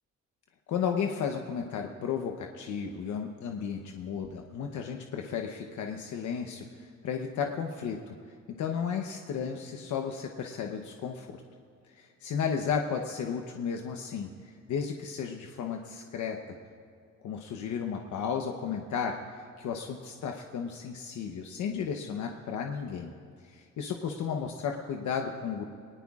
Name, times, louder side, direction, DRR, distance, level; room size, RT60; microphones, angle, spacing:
voice 1, 0.7-8.2 8.6-11.4 11.9-16.6 17.2-23.1 23.4-25.7, left 7 dB, 75° left, 3 dB, 1.0 m, -34 dB
19.5 x 19.0 x 2.4 m, 2.4 s
cardioid pair, 90°, 30 cm